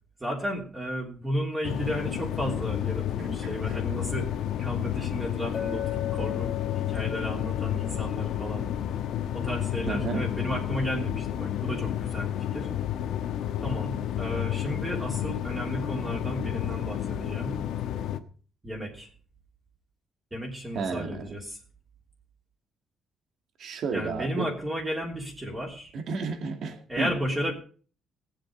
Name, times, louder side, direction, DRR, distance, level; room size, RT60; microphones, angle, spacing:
voice 1, 0.2-4.3 4.6-8.7 9.3-12.7 13.6-17.6 18.6-19.1 20.3-21.6 23.9-25.9 26.9-27.5, equal, 15° right, -1 dB, 3.2 m, -33 dB
sound 1, 1.6-18.2, left 11 dB, 75° left, 1.2 m, -31 dB
Chink clink, 5.5-9.5, left 12 dB, 30° left, 3.0 m, -38 dB
voice 2, 9.8-10.2 20.7-21.2 23.6-24.5 25.9-27.1, right 4 dB, 55° right, 7 dB, 2.2 m, -32 dB
18.5 x 8.0 x 5.3 m, 0.41 s
cardioid pair, 155°, 0 cm